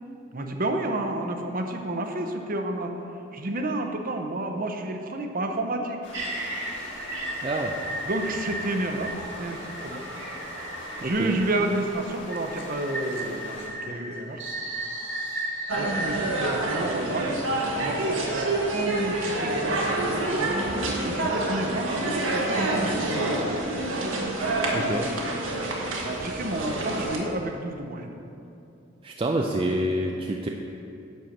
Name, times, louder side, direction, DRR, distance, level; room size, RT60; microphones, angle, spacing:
voice 1, 0.3-2.9 3.3-6.0 8.0-10.1 11.0-14.4 15.7-17.3 17.8-20.7 21.1-23.6 26.2-28.1, right 2 dB, 45° right, 4 dB, 0.8 m, -30 dB
sound 1, 6.0-13.7, left 2 dB, 65° left, 1.6 m, -42 dB
sound 2, 6.1-11.4 12.3-16.5, right 1 dB, 65° right, 1.8 m, -35 dB
voice 2, 7.4-7.7 11.0-11.3 24.7-25.1 29.0-30.5, right 1 dB, 25° right, 1 dB, 0.4 m, -27 dB
sound 3, 15.7-27.2, right 2 dB, 80° right, 1.4 m, -27 dB
11.0 x 4.5 x 6.5 m, 2.7 s
head